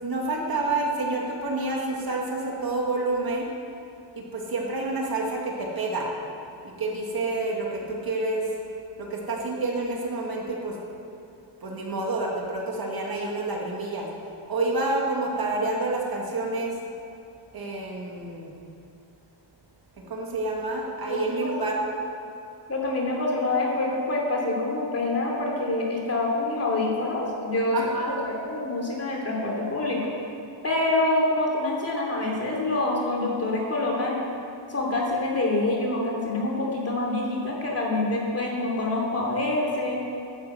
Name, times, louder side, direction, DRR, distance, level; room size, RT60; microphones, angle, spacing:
voice 1, 0.0-3.5 4.2-6.1 6.6-8.5 9.0-10.8 11.6-14.1 14.5-16.8 17.5-18.5 20.0-21.8 27.7-28.2, right 2 dB, 50° right, -1 dB, 2.2 m, -28 dB
voice 2, 21.1-21.5 22.7-27.8 28.2-30.1 30.6-34.2 34.7-40.0, left 2 dB, 30° left, -2 dB, 2.9 m, -26 dB
12.0 x 9.9 x 8.0 m, 2.6 s
wide cardioid pair, 160°, 46 cm